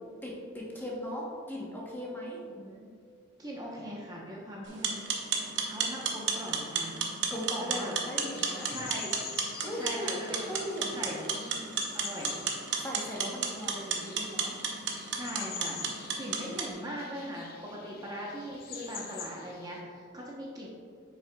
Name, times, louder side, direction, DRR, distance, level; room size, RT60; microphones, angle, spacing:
voice 1, 0.2-2.4 7.3-8.7 9.6-10.2 10.5-11.1 12.8-14.6, equal, 10° left, -4 dB, 0.9 m, -38 dB
voice 2, 2.6-2.9 3.4-7.0 7.6-7.9 8.7-9.1 9.8-10.5 10.9-11.6 11.9-12.4 15.0-15.8 16.2-20.7, equal, 20° right, -3 dB, 0.8 m, -40 dB
sound 1, 4.7-16.7, right 5 dB, 65° right, 0.8 m, -33 dB
sound 2, 8.3-19.8, left 6 dB, 50° left, 0.6 m, -45 dB
8.3 x 6.0 x 2.3 m, 2.2 s
head